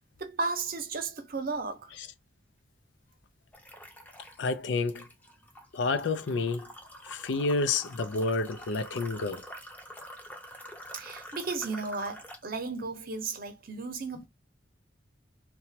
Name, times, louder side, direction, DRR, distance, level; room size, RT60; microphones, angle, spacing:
voice 1, 0.2-1.9 10.9-14.3, right 4 dB, 55° right, 0.7 m, -34 dB
sound 1, 3.5-4.5 4.9-12.5, equal, 10° left, 0.6 m, -46 dB
voice 2, 4.4-5.1 5.7-6.7 7.0-9.4, left 3 dB, 90° left, 0.5 m, -29 dB
2.9 x 2.3 x 2.7 m
head